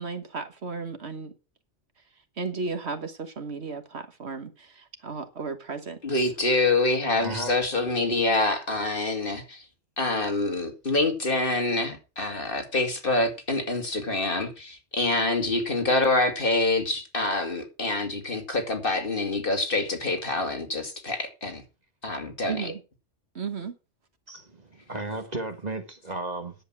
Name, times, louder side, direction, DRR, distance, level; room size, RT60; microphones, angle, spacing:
voice 1, 0.0-1.3 2.4-6.0 7.3-7.4 22.5-22.8 23.3-23.7, right 4 dB, 60° right, 1.6 m, -34 dB
voice 2, 6.0-9.6 10.0-21.6 22.0-22.7, left 2 dB, 45° left, 2.4 m, -26 dB
voice 3, 7.2-7.5 24.3-26.5, right 2 dB, 35° right, 1.9 m, -34 dB
10.5 x 8.1 x 6.1 m
omnidirectional pair, 1.3 m